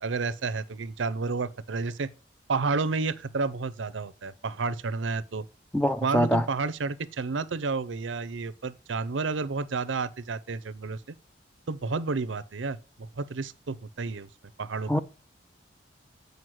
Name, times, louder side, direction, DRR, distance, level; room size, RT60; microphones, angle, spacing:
voice 1, 0.0-2.1 2.5-5.5 6.0-11.0 11.7-14.3 14.6-15.0, right 4 dB, 90° right, 0.6 m, -31 dB
voice 2, 5.7-6.4 14.9-15.0, equal, 5° left, 0.4 m, -24 dB
7.9 x 5.3 x 7.6 m
head